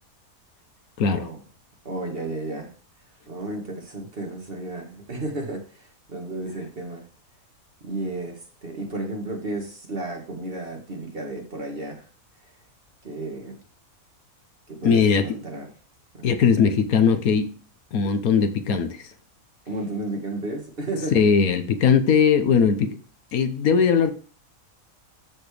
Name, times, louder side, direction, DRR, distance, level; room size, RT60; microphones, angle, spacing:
voice 1, 1.8-2.7 3.3-7.0 7.8-12.0 13.0-13.6 14.7-15.7 16.2-16.5 19.7-21.1, right 2 dB, 40° right, 2.0 m, -33 dB
voice 2, 14.8-15.3 16.2-17.5 17.9-19.0 21.1-23.0 23.3-24.1, left 6 dB, 75° left, 1.3 m, -19 dB
13.0 x 4.4 x 3.4 m
omnidirectional pair, 1.5 m